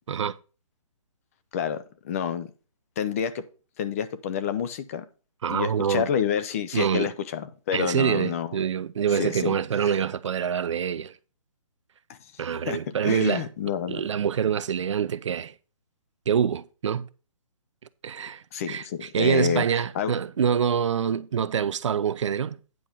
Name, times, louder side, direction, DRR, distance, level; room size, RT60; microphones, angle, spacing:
voice 1, 2.0-2.5 3.0-3.4 3.8-5.0 5.5-8.6 9.1-9.5 9.8-10.0 12.7-14.0 18.5-19.6 19.9-20.1, left 8 dB, 25° left, 0.6 m, -28 dB
voice 2, 5.4-6.1 6.7-7.1 7.7-11.1 12.4-13.5 13.9-15.5 16.3-17.1 18.0-22.6, right 7 dB, 60° right, 0.6 m, -26 dB
9.4 x 5.0 x 5.7 m
hypercardioid pair, 160°, 18 cm